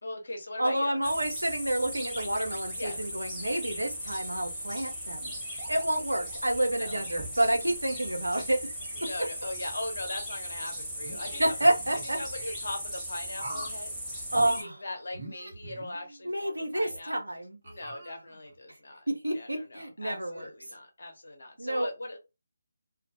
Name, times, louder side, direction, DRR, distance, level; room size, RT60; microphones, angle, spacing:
voice 1, 0.0-1.1 2.8-3.0 6.7-7.0 8.9-11.5 12.0-17.1 17.6-19.1 19.3-22.2, left 2 dB, 60° left, 0.9 m, -40 dB
voice 2, 0.6-5.3 5.7-8.7 9.0-9.1 11.4-12.5 14.3-14.8 16.2-17.6 19.1-20.5 21.6-21.9, right 1 dB, 85° right, 0.7 m, -29 dB
sound 1, 1.0-14.6, equal, 10° right, 1.3 m, -38 dB
sound 2, 2.1-4.1 5.6-7.4, right 3 dB, 25° right, 0.9 m, -50 dB
sound 3, 11.0-12.5 13.4-13.8 14.3-14.5 15.1-16.4 16.9-17.0 17.6-18.6, right 2 dB, 50° right, 1.0 m, -43 dB
2.4 x 2.2 x 2.7 m
figure-of-eight pair, 150°, 0 cm